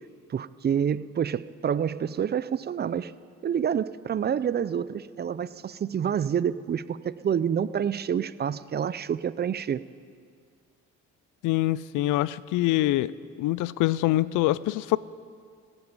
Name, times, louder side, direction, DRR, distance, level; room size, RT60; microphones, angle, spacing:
voice 1, 0.3-3.1 3.4-9.8, right 8 dB, 35° right, 17 dB, 0.4 m, -28 dB
voice 2, 11.4-13.1 13.4-15.0, left 16 dB, 90° left, 19 dB, 0.5 m, -24 dB
15.5 x 8.8 x 9.7 m, 2.1 s
cardioid pair, 90°, 30 cm